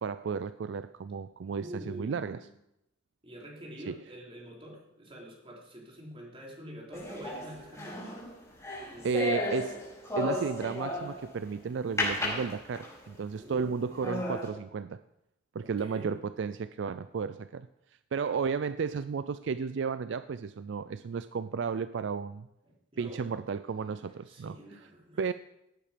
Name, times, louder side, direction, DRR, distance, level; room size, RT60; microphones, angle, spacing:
voice 1, 0.0-2.4 3.9-4.0 9.0-9.8 10.2-15.0 15.5-17.7 18.1-22.5 23.0-24.6 25.2-25.3, right 5 dB, 70° right, 0.4 m, -33 dB
voice 2, 1.4-2.5 3.2-8.3 8.9-9.4 13.3-14.2 15.6-16.2 22.6-23.4 23.9-24.0 24.3-25.2, equal, 30° right, 3.3 m, -47 dB
sound 1, 6.9-11.3 12.0-13.1 13.6-13.7 14.0-14.5, left 1 dB, 15° left, 5.8 m, -34 dB
17.5 x 8.8 x 5.1 m
head